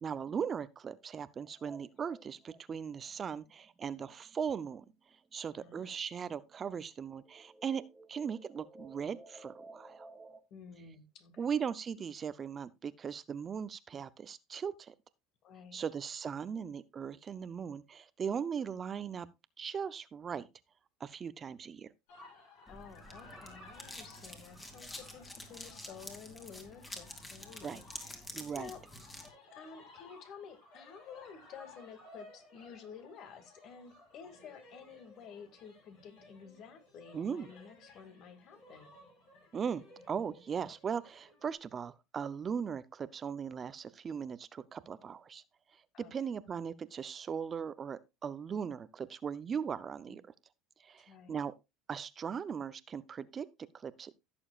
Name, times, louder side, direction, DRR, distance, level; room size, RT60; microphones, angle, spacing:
voice 1, 0.0-4.9 5.3-10.1 11.4-14.9 15.7-19.3 19.6-20.5 21.0-21.9 27.6-27.8 28.3-28.7 37.1-37.5 39.5-45.4 45.7-45.8 46.1-50.3 50.8-51.5 51.9-53.5 53.7-54.1, right 7 dB, 30° right, 0.6 m, -38 dB
sound 1, 1.4-5.5 5.8-10.4, right 2 dB, 10° right, 1.8 m, -57 dB
voice 2, 5.6-5.9 10.5-11.5 15.4-15.8 22.7-28.3 28.5-28.8 29.5-38.9 45.9-46.1 50.1-50.2 51.1-51.4, left 6 dB, 55° left, 2.2 m, -52 dB
sound 2, 22.1-41.5, left 2 dB, 75° left, 7.7 m, -58 dB
sound 3, 22.7-29.3, left 1 dB, 15° left, 2.5 m, -48 dB
16.0 x 7.0 x 2.4 m
supercardioid pair, 105°, 0 cm